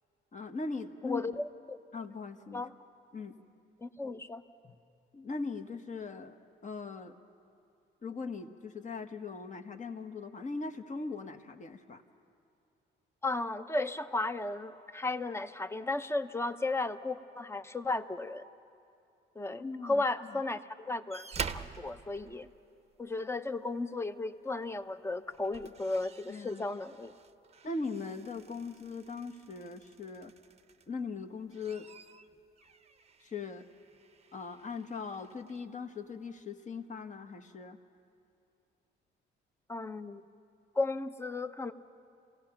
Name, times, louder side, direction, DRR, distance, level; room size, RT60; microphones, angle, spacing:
voice 1, 0.3-1.2 1.9-2.6 3.1-3.4 5.1-6.4 6.6-7.2 8.0-12.0 19.6-20.0 20.3-20.4 26.3-26.6 27.6-30.3 30.9-31.9 33.2-33.7 34.3-37.8, left 4 dB, 40° left, 7 dB, 1.3 m, -40 dB
voice 2, 1.0-1.8 2.5-2.7 3.8-4.7 13.2-18.5 19.3-22.5 23.0-27.1 39.7-40.2 40.7-41.7, left 2 dB, 15° left, 11 dB, 0.7 m, -35 dB
sound 1, 21.1-23.1 24.6-24.8 25.2-31.0 31.4-35.6 36.5-36.6, right 6 dB, 30° right, 0.7 m, -47 dB
27.5 x 17.0 x 5.8 m, 2.5 s
cardioid pair, 90°, 20 cm